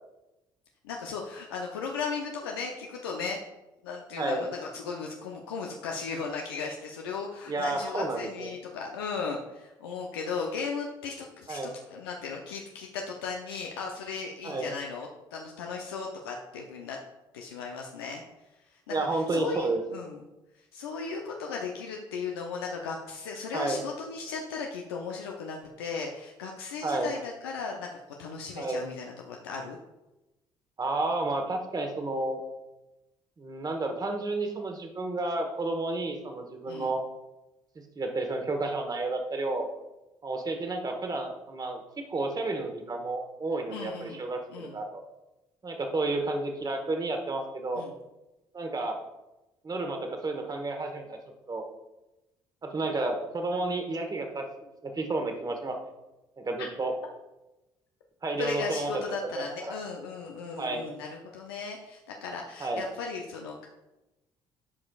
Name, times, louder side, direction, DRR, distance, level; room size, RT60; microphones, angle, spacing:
voice 1, 0.8-3.4 3.8-17.0 17.3-18.2 18.7-20.2 20.7-27.9 28.2-29.8 36.7-37.0 43.7-44.2 44.5-44.8 47.7-47.9 58.4-63.7, left 5 dB, 90° left, 0 dB, 0.6 m, -36 dB
voice 2, 7.5-8.5 11.5-11.7 14.4-14.7 18.9-19.8 23.5-23.8 26.8-27.1 28.6-28.9 30.8-32.4 33.4-37.0 37.9-39.7 40.2-45.0 45.6-47.9 48.5-49.0 49.6-51.2 51.5-51.6 52.6-54.4 54.8-55.8 56.4-56.9 58.2-58.9 59.3-59.8 60.6-60.9 62.6-62.9, right 2 dB, 30° right, 4 dB, 1.2 m, -31 dB
12.0 x 4.9 x 2.3 m, 1.0 s
hypercardioid pair, 55°, 12 cm